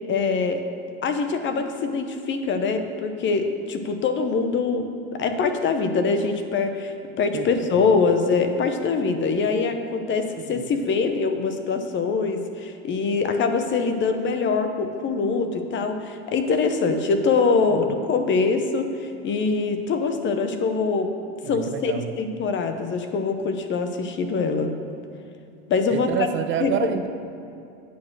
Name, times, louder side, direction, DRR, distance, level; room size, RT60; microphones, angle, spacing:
voice 1, 0.1-0.6 1.0-21.1 21.5-24.7 25.7-26.1 26.6-26.9, left 4 dB, 35° left, 7 dB, 0.8 m, -24 dB
voice 2, 21.4-22.1 25.9-27.1, right 9 dB, 40° right, 8 dB, 0.4 m, -28 dB
8.4 x 4.4 x 6.1 m, 2.7 s
hypercardioid pair, 95°, 32 cm